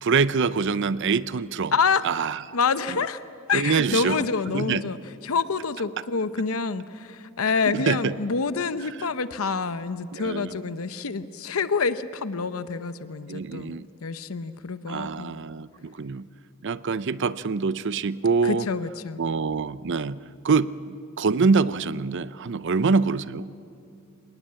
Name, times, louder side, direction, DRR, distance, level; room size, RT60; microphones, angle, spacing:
voice 1, 0.0-1.7 2.0-2.4 2.9-3.1 3.5-4.9 7.6-8.2 8.8-8.9 10.1-10.6 13.3-13.9 14.9-16.3 16.6-18.7 19.2-20.2 20.4-23.5, right 4 dB, 60° right, 16 dB, 0.6 m, -25 dB
voice 2, 2.5-3.2 3.5-5.0 5.2-15.3 18.4-19.2, left 5 dB, 80° left, 12 dB, 0.8 m, -27 dB
26.5 x 19.0 x 8.7 m, 2.5 s
head